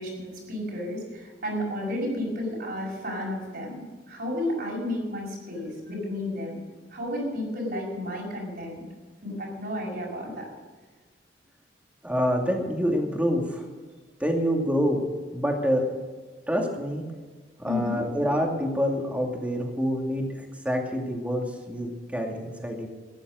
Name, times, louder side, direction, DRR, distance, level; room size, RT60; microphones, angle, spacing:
voice 1, 0.0-6.6 6.9-8.8 9.2-10.5 17.6-18.0, left 1 dB, 60° right, -3 dB, 6.0 m, -32 dB
voice 2, 12.0-13.6 14.2-15.0 15.3-15.8 16.5-17.0 17.6-22.9, equal, 10° right, 2 dB, 2.4 m, -27 dB
15.0 x 11.0 x 6.4 m, 1.4 s
head